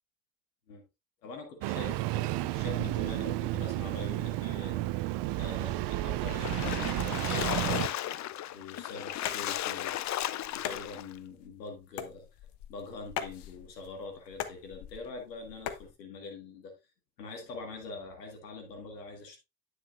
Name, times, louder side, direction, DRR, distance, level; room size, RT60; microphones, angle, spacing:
voice 1, 1.2-4.9 5.4-8.0 8.5-10.0 10.5-12.3 12.7-16.7 17.2-19.4, left 3 dB, 90° left, 1.9 m, -44 dB
Engine starting, 1.6-7.9, right 16 dB, 60° right, 0.7 m, -32 dB
Splash splatter, 6.3-11.1, left 13 dB, 40° left, 0.5 m, -35 dB
sound 1, 9.3-15.9, left 10 dB, 55° left, 1.1 m, -42 dB
9.8 x 6.3 x 2.5 m
hypercardioid pair, 55°, 48 cm